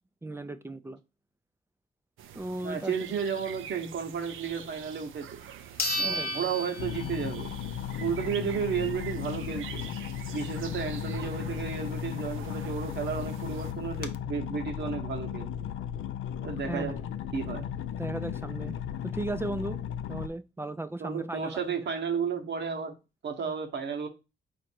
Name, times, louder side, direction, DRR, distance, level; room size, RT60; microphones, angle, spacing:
voice 1, 0.2-1.0 2.3-3.1 6.0-6.4 16.7-17.0 18.0-18.8 19.0-19.8 20.1-21.6, right 2 dB, 10° right, 0.4 m, -36 dB
sound 1, 2.2-13.7, right 9 dB, 75° right, 0.5 m, -45 dB
voice 2, 2.6-5.4 6.0-7.5 8.0-9.8 10.3-15.5 16.4-17.0 17.3-17.7 21.0-22.9 23.2-24.1, right 6 dB, 60° right, 1.0 m, -33 dB
sound 2, 5.0-5.1 5.8-7.5 7.9-8.0 12.6-12.7 13.0-13.1 13.6-14.1, left 1 dB, 50° left, 0.8 m, -33 dB
sound 3, 6.8-20.3, left 9 dB, 75° left, 0.4 m, -35 dB
4.3 x 2.6 x 4.3 m
cardioid pair, 80°, 21 cm